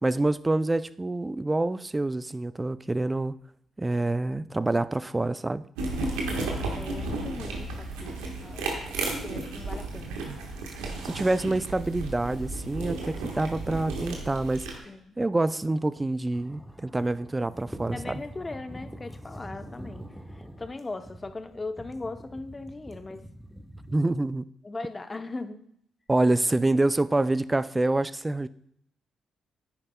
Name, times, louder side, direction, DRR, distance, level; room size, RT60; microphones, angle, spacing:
voice 1, 0.0-3.4 3.8-5.6 10.8-14.7 15.2-18.2 23.9-24.5 26.1-28.5, right 2 dB, 20° right, 0.4 m, -26 dB
sound 1, 5.8-14.8, right 2 dB, 80° right, 1.3 m, -33 dB
voice 2, 6.7-8.7 9.0-10.2 14.8-15.2 17.9-20.1 20.6-23.2 24.6-25.6, left 3 dB, 30° left, 0.8 m, -39 dB
sound 2, 16.3-24.1, equal, 5° right, 1.1 m, -44 dB
10.0 x 9.8 x 2.3 m
hypercardioid pair, 45°, 0 cm